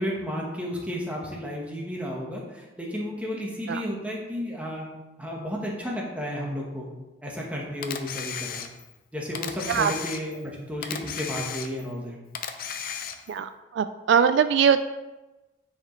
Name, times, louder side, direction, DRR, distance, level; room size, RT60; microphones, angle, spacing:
voice 1, 0.0-4.9 5.2-6.9 7.2-8.6 9.1-12.2, equal, 5° right, -2 dB, 1.2 m, -32 dB
Camera, 7.8-9.0 9.3-10.5 10.8-12.0 12.3-13.4, left 8 dB, 50° left, 0.5 m, -34 dB
voice 2, 13.3-14.8, right 7 dB, 70° right, 11 dB, 0.3 m, -22 dB
9.7 x 4.9 x 3.2 m, 1.1 s
head